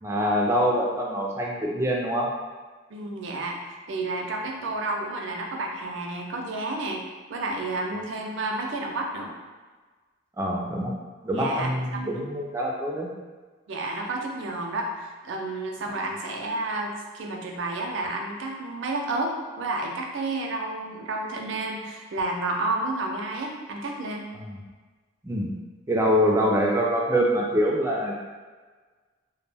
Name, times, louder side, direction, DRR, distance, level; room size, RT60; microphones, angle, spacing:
voice 1, 0.0-2.3 10.4-10.9 11.2-13.1 15.9-16.0 24.4-24.6 25.2-25.5 25.9-28.1, equal, 15° right, -2 dB, 0.3 m, -24 dB
voice 2, 2.9-3.6 3.9-7.0 7.3-9.3 11.3-12.2 13.7-24.3, right 2 dB, 80° right, 1 dB, 0.4 m, -31 dB
2.2 x 2.1 x 3.3 m, 1.4 s
head